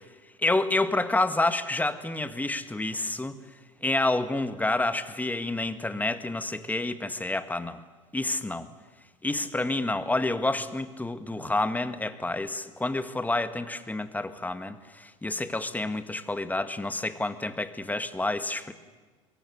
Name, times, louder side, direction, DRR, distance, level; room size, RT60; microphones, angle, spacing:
voice 1, 0.4-3.4 3.8-7.8 8.1-8.7 9.2-18.7, left 2 dB, 10° left, 10 dB, 1.8 m, -29 dB
25.0 x 22.0 x 9.6 m, 1.4 s
hypercardioid pair, 75°, 17 cm